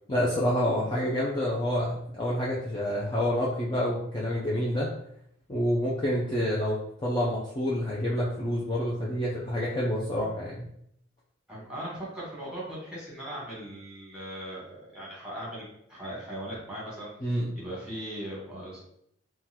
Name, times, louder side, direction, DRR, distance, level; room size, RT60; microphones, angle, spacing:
voice 1, 0.1-4.9 5.5-10.7 17.2-17.5, equal, 20° left, -6 dB, 0.4 m, -28 dB
voice 2, 11.5-18.8, right 1 dB, 5° right, -7 dB, 1.1 m, -39 dB
3.7 x 2.2 x 2.8 m, 0.73 s
head